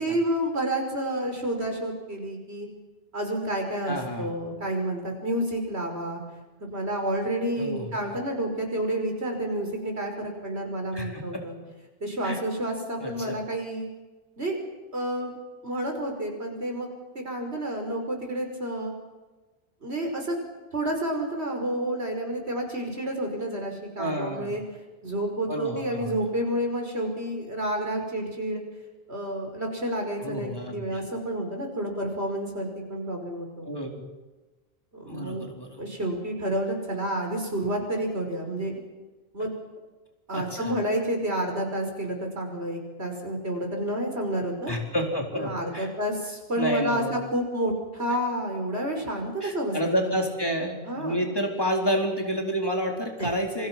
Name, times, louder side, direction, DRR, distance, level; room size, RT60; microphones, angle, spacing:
voice 1, 0.0-2.7 3.1-6.2 6.7-11.6 12.0-13.9 14.4-14.6 14.9-15.4 15.6-16.9 17.1-18.9 19.8-20.4 20.7-24.6 25.0-28.6 29.1-33.7 34.9-35.5 35.8-38.8 39.3-39.5 40.3-44.7 45.3-49.9 50.9-51.3 53.2-53.3, right 1 dB, 80° right, 2 dB, 5.7 m, -30 dB
voice 2, 3.8-4.3 7.6-7.9 10.9-11.2 12.2-12.4 13.0-13.4 24.0-24.6 25.5-26.2 30.2-31.0 33.6-33.9 35.1-35.8 40.3-40.7 44.7-45.9 46.6-47.1 49.4-53.7, equal, 20° left, 1 dB, 4.2 m, -29 dB
28.0 x 25.0 x 6.1 m, 1.2 s
omnidirectional pair, 1.1 m